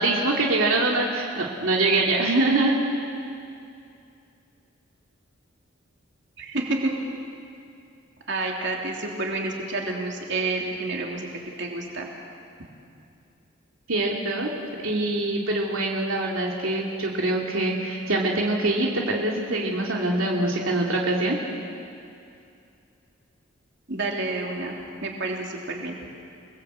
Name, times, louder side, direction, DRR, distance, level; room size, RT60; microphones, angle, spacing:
voice 1, 0.0-2.8 13.9-14.5 14.8-21.4, right 2 dB, 85° right, -1 dB, 2.8 m, -24 dB
voice 2, 6.4-6.9 8.3-11.3 11.6-12.1 23.9-26.0, right 2 dB, 60° right, 0 dB, 3.3 m, -29 dB
29.0 x 20.5 x 8.1 m, 2.6 s
head